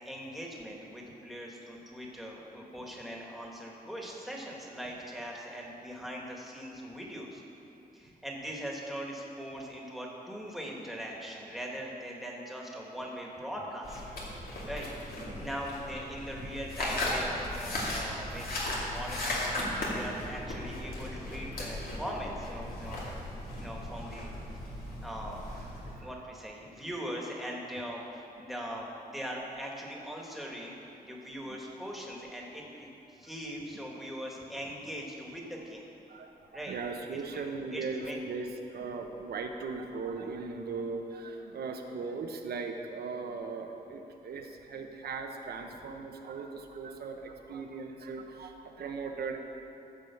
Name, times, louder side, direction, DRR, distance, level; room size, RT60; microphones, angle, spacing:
voice 1, 0.0-7.4 7.9-14.0 14.6-23.0 23.6-24.3 25.0-25.4 26.0-30.8 31.0-35.9 36.5-36.7 37.1-37.4 37.7-38.2, equal, ahead, -2 dB, 1.7 m, -41 dB
sound 1, 13.8-26.0, left 1 dB, 70° left, 2.4 m, -36 dB
voice 2, 23.4-23.9 24.7-24.9 25.3-25.4 25.9-26.1 26.7-26.8 29.6-29.7 31.4-31.6 36.1-49.4, right 4 dB, 85° right, 4 dB, 1.0 m, -39 dB
14.5 x 5.0 x 7.0 m, 2.9 s
wide cardioid pair, 120°, 16 cm